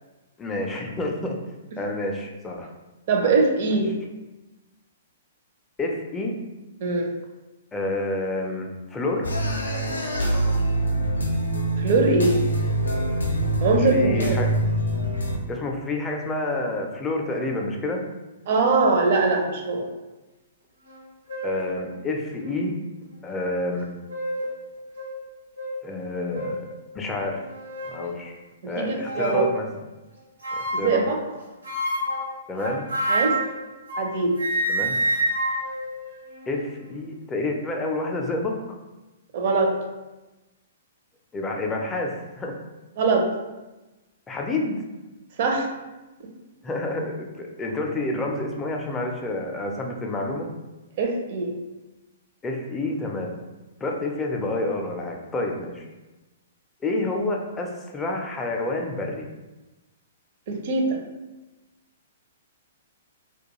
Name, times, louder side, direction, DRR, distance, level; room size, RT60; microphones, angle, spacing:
voice 1, 0.4-1.4 1.8-2.7 3.2-3.3 3.7-3.8 5.8-6.3 7.7-9.3 13.7-14.5 15.5-18.0 21.4-22.8 23.2-23.9 25.8-26.6 26.9-27.4 27.8-28.4 28.7-29.7 30.5-31.1 32.5-32.9 34.7-35.0 36.5-38.8 41.3-42.6 44.3-44.8 46.6-50.5 52.4-53.3 53.8-55.8 56.8-59.3, left 2 dB, 15° left, 1 dB, 0.4 m, -28 dB
voice 2, 3.1-3.9 6.8-7.1 11.8-12.4 13.6-14.4 18.5-19.9 28.6-28.8 29.2-29.5 30.7-31.2 33.1-33.4 34.0-34.3 39.3-39.8 43.0-43.3 45.4-45.7 51.0-51.5 60.5-61.0, right 3 dB, 55° right, 2 dB, 0.5 m, -22 dB
sound 1, 9.2-15.4, right 1 dB, 90° left, 0.5 m, -24 dB
sound 2, 20.9-21.0 21.3-21.7 22.4-22.5 23.8-24.5 25.0-25.1 25.6-25.7 26.3-26.6 27.3-28.0 29.0-29.5 30.4-31.0 31.6-34.1 34.4-36.7, right 1 dB, 85° right, 1.2 m, -28 dB
2.3 x 2.2 x 2.9 m, 1.1 s
hypercardioid pair, 125°, 0 cm